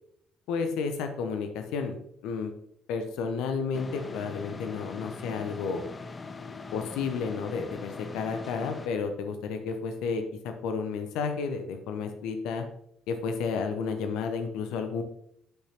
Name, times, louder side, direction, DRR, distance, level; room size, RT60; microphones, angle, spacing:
voice 1, 0.5-2.5 2.9-5.8 6.7-12.6 13.1-15.0, left 5 dB, 65° left, 6 dB, 0.8 m, -32 dB
sound 1, 3.7-8.9, left 4 dB, 30° left, 0.6 m, -41 dB
11.5 x 5.7 x 2.9 m, 0.72 s
figure-of-eight pair, 50°, 0 cm